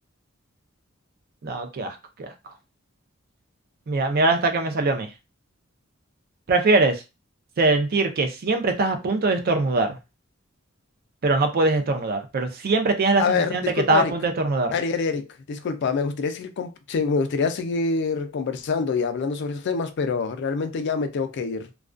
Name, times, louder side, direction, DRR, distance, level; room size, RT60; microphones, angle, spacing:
voice 1, 1.4-2.3 3.9-5.1 6.5-7.0 7.6-10.0 11.2-14.7, right 3 dB, 50° right, 0.4 m, -22 dB
voice 2, 13.2-14.1 14.7-21.7, left 4 dB, 60° left, 0.4 m, -26 dB
2.3 x 2.2 x 2.4 m
head